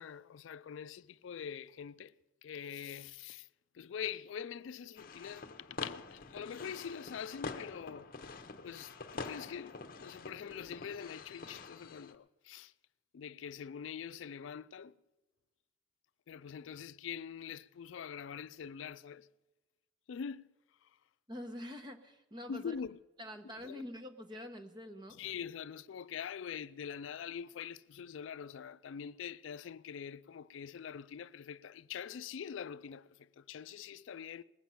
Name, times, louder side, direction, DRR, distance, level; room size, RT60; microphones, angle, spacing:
voice 1, 0.0-2.1 2.4-3.5 3.7-8.1 8.6-12.7 13.1-15.0 16.3-19.3 20.1-20.5 20.8-21.0 22.5-23.0 23.6-23.8 25.1-34.4, left 7 dB, 75° left, 0.4 m, -44 dB
sound 1, 5.0-12.1, left 3 dB, 45° left, 0.8 m, -46 dB
voice 2, 21.3-22.7 23.2-25.2, left 1 dB, 25° right, 1.0 m, -46 dB
20.0 x 8.8 x 5.7 m
head